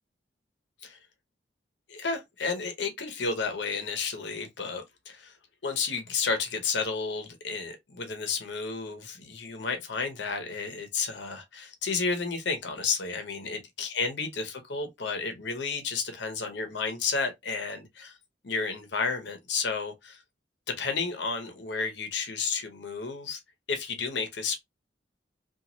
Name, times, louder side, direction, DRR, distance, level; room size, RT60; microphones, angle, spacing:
voice 1, 1.9-5.4 5.6-18.2 18.4-20.2 20.7-23.4 23.7-24.6, left 4 dB, 75° left, 0.8 m, -32 dB
3.0 x 2.4 x 2.5 m
head